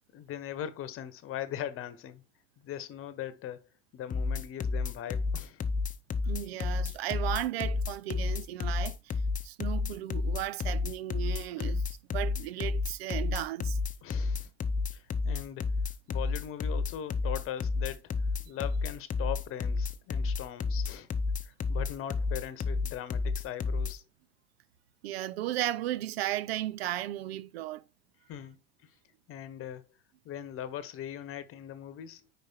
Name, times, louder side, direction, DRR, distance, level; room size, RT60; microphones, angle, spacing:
voice 1, 0.1-2.2 2.6-3.6 3.9-5.6 11.6-11.7 14.0-14.5 14.9-15.7 16.1-18.1 18.4-21.1 21.4-24.0 28.3-28.6 28.8-28.9 29.3-29.8 30.2-32.2, left 10 dB, 45° left, 1.0 m, -40 dB
sound 1, 4.1-23.9, left 4 dB, 25° left, 0.7 m, -30 dB
voice 2, 6.3-9.1 9.4-13.8 25.0-27.8, right 14 dB, 90° right, 0.5 m, -35 dB
4.9 x 4.8 x 4.4 m
supercardioid pair, 95°, 30 cm